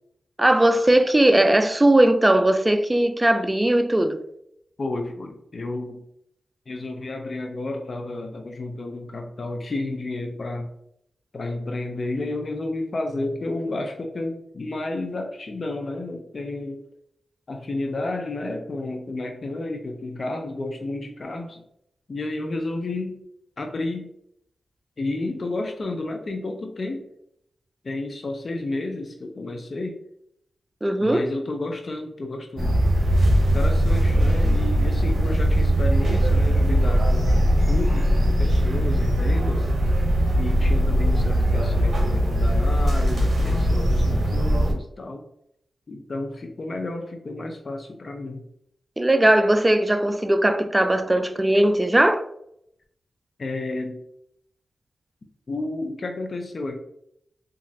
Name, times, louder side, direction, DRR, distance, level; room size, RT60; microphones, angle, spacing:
voice 1, 0.4-4.2 30.8-31.2 49.0-52.2, right 1 dB, 20° right, 0.3 m, -19 dB
voice 2, 4.8-6.0 6.7-10.7 11.3-16.8 17.5-21.6 22.1-23.2 23.6-24.1 25.0-27.1 27.8-30.0 31.0-32.8 33.5-39.7 40.4-45.2 45.9-48.5 53.4-54.0 55.5-56.8, left 2 dB, 55° left, 0.4 m, -31 dB
sound 1, 32.6-44.7, equal, 60° right, 0.7 m, -20 dB
2.9 x 2.4 x 2.6 m
cardioid pair, 50°, 0 cm